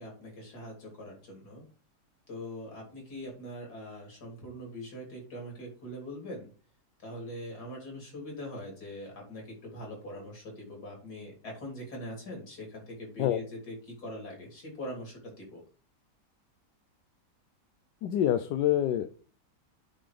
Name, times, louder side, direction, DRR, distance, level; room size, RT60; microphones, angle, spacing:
voice 1, 0.0-1.6 2.3-6.5 7.0-15.6, left 1 dB, 60° left, 0 dB, 3.6 m, -42 dB
voice 2, 18.0-19.1, left 11 dB, 80° left, 10 dB, 1.3 m, -26 dB
8.9 x 3.8 x 5.1 m, 0.38 s
omnidirectional pair, 1.9 m